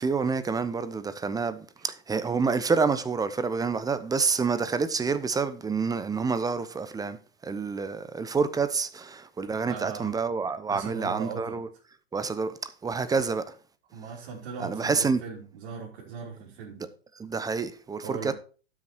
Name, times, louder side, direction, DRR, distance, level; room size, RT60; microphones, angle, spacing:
voice 1, 0.0-7.2 7.4-11.7 12.1-13.5 14.6-15.2 17.2-18.3, right 5 dB, 10° right, 0.8 m, -28 dB
voice 2, 9.6-10.2 10.7-11.6 13.9-16.9 18.0-18.3, right 6 dB, 60° right, 3.5 m, -39 dB
12.0 x 6.4 x 4.4 m
hypercardioid pair, 110°, 32 cm